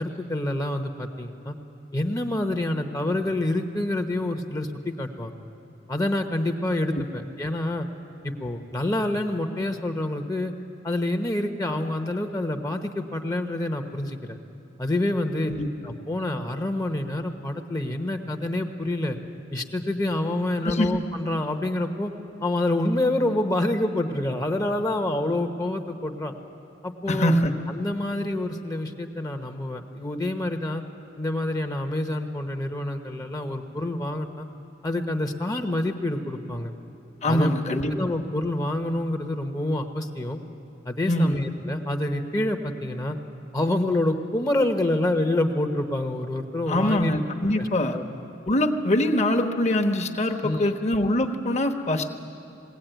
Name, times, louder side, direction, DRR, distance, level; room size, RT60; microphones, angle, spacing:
voice 1, 0.0-1.6 1.9-5.3 5.9-7.9 8.2-10.5 10.8-14.4 14.8-15.5 15.8-19.2 19.5-22.1 22.4-26.3 26.8-27.3 27.7-30.8 31.2-34.5 34.8-36.7 37.3-40.4 40.8-43.2 43.5-47.1 47.6-47.7 47.9-48.0 50.4-50.7, left 1 dB, 20° left, 5 dB, 0.9 m, -27 dB
voice 2, 27.1-27.5 37.2-37.9 41.1-41.4 46.7-48.0 48.5-52.1, left 1 dB, 35° left, 3 dB, 1.2 m, -23 dB
21.0 x 17.0 x 9.1 m, 2.8 s
head